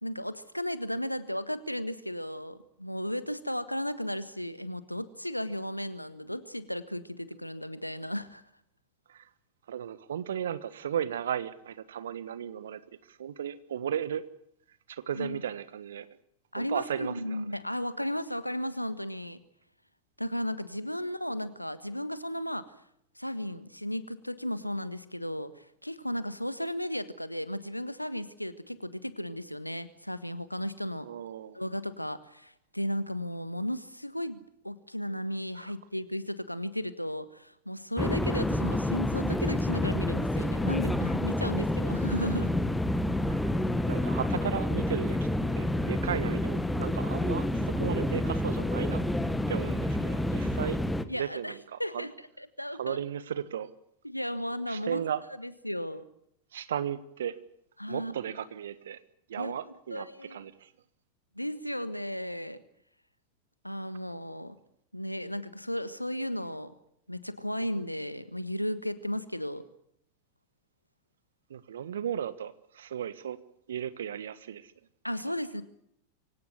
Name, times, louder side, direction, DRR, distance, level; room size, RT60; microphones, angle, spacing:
voice 1, 0.0-8.4 15.2-15.4 16.5-19.4 20.2-22.7 23.1-31.1 31.5-42.5 51.1-51.5 51.8-53.0 54.0-55.0 55.4-56.1 57.8-58.1 59.4-59.6 59.9-60.4 61.3-62.6 63.6-64.5 64.9-66.7 67.1-69.6 75.0-75.6, equal, 90° left, 14 dB, 1.5 m, -35 dB
voice 2, 9.7-12.8 13.1-14.2 14.9-16.1 16.5-17.4 31.0-31.6 43.3-43.5 43.9-45.3 45.6-49.0 49.5-50.8 51.1-52.1 52.7-53.7 54.7-55.2 56.5-57.3 57.9-59.0 59.3-60.7 71.5-73.4 73.7-74.7, right 9 dB, 65° right, 15 dB, 1.4 m, -35 dB
sound 1, 38.0-51.0, left 1 dB, 5° left, 1.4 m, -29 dB
24.5 x 17.0 x 9.6 m, 0.72 s
figure-of-eight pair, 90°, 0 cm